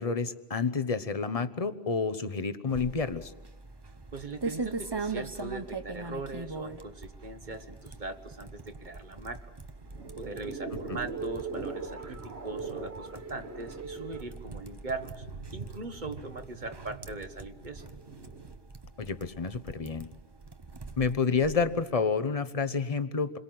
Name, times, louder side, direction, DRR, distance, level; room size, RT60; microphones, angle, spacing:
voice 1, 0.0-3.3 10.9-11.0 19.0-20.1 21.0-23.4, left 5 dB, 35° left, 12 dB, 1.1 m, -29 dB
sound 1, 2.7-21.8, right 3 dB, 25° right, 0.9 m, -42 dB
voice 2, 4.1-9.5 10.2-15.3 15.5-17.9, right 2 dB, 45° right, 8 dB, 1.6 m, -40 dB
sound 2, 9.8-18.5, right 4 dB, 85° right, 2.0 m, -41 dB
28.0 x 22.0 x 7.7 m, 1.0 s
omnidirectional pair, 1.1 m